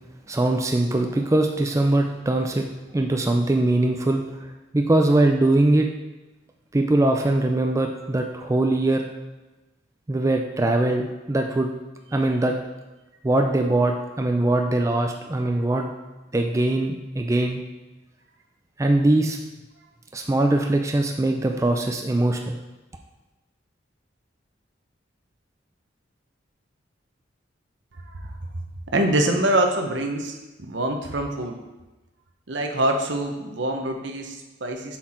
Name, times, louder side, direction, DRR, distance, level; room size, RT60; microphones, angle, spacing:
voice 1, 0.3-2.7 2.9-4.2 4.7-5.9 6.7-9.0 10.1-11.7 12.1-12.5 13.2-15.9 16.3-17.6 18.8-19.4 20.1-22.6, right 2 dB, 15° right, 3 dB, 0.4 m, -21 dB
voice 2, 28.9-30.4 30.7-31.6 32.5-35.0, right 1 dB, 65° right, 4 dB, 0.9 m, -24 dB
7.4 x 4.6 x 4.4 m, 1.1 s
head